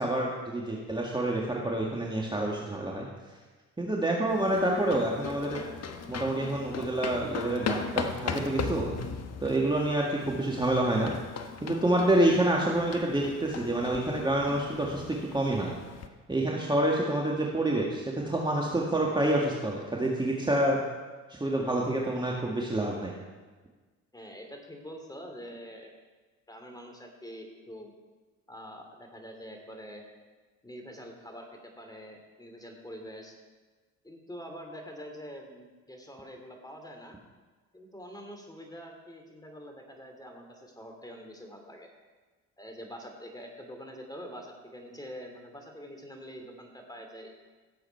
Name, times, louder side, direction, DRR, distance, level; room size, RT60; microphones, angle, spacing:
voice 1, 0.0-3.1 3.8-5.6 6.1-9.0 9.4-11.1 11.6-15.7 16.3-20.8 21.3-23.1, right 1 dB, 10° right, -2 dB, 1.9 m, -28 dB
sound 1, 4.3-16.1, left 5 dB, 40° left, 1.2 m, -38 dB
voice 2, 24.1-25.9 26.5-27.9 28.5-30.1 30.6-33.4 34.0-37.2 37.7-41.9 42.6-47.3, equal, 10° left, 3 dB, 2.8 m, -45 dB
16.5 x 7.8 x 4.6 m, 1.3 s
hypercardioid pair, 65°, 38 cm